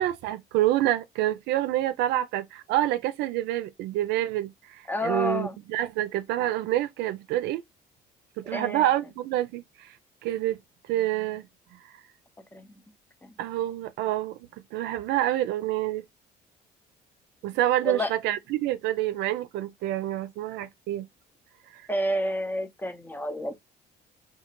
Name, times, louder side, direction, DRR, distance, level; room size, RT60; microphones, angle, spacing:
voice 1, 0.0-7.6 8.4-9.9 10.2-10.6 10.9-11.4 13.4-16.0 17.4-21.1 21.7-21.8, right 13 dB, 85° right, 0.4 m, -27 dB
voice 2, 4.9-5.6 8.5-8.9 12.5-12.8 13.2-13.3 17.8-18.1 21.9-23.6, equal, 10° left, 0.5 m, -29 dB
3.7 x 2.4 x 3.0 m
cardioid pair, 110°, 17 cm